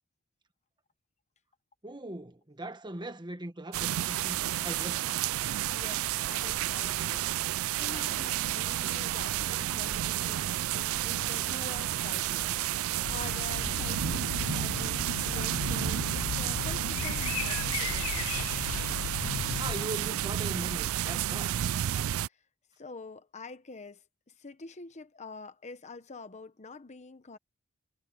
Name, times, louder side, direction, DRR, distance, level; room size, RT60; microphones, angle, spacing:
voice 1, 1.8-5.1 19.2-21.7, right 1 dB, 20° right, 1.4 m, -40 dB
sound 1, 3.7-22.3, right 12 dB, 65° right, 0.4 m, -31 dB
voice 2, 5.7-7.3 7.8-12.5 13.1-18.3 22.3-22.4 22.8-27.4, left 3 dB, 30° left, 1.0 m, -47 dB
sound 2, 13.0-19.8, left 9 dB, 65° left, 0.3 m, -36 dB
head